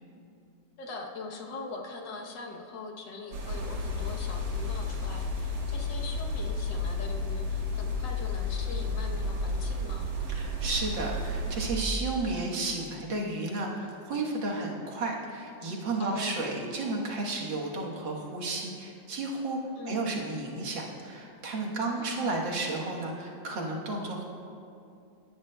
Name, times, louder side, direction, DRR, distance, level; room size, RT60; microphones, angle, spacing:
voice 1, 0.8-10.1 16.0-16.4 19.8-20.1 21.9-22.3, left 3 dB, 70° left, 1 dB, 1.6 m, -42 dB
sound 1, 3.3-11.7, left 2 dB, 90° right, 2.1 m, -32 dB
voice 2, 10.3-19.6 19.9-24.2, right 2 dB, 75° right, -2 dB, 1.9 m, -32 dB
17.0 x 10.0 x 2.2 m, 2.5 s
omnidirectional pair, 2.1 m